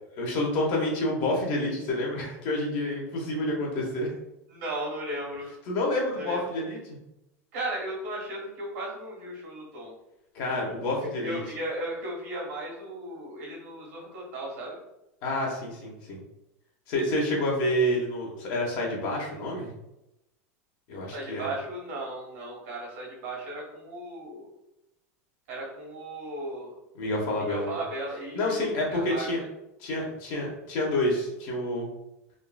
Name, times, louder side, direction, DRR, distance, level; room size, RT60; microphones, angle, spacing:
voice 1, 0.1-4.1 5.7-6.8 10.3-11.4 15.2-16.2 16.9-19.7 20.9-21.5 26.9-27.8 28.3-29.4 29.8-31.9, left 1 dB, 55° left, -2 dB, 1.1 m, -28 dB
voice 2, 4.5-5.5 6.1-6.4 7.5-9.9 11.0-14.8 21.1-24.5 25.5-26.7 27.5-28.6 28.9-29.3, right 1 dB, 70° right, -3 dB, 1.5 m, -36 dB
3.7 x 2.4 x 2.3 m, 0.91 s
supercardioid pair, 115°, 8 cm